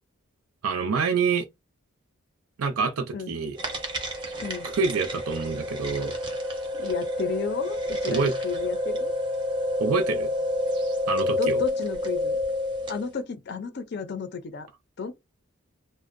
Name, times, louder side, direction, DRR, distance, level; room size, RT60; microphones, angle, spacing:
voice 1, 0.6-1.5 2.6-3.6 4.7-6.1 8.1-8.3 9.8-10.3 11.1-11.6, right 5 dB, 90° right, 0.5 m, -26 dB
sound 1, 3.6-13.1, left 1 dB, 20° right, 0.5 m, -29 dB
voice 2, 6.7-9.1 11.4-12.4 12.9-14.7 15.0-15.1, left 5 dB, 50° left, 0.4 m, -32 dB
2.5 x 2.0 x 2.5 m
head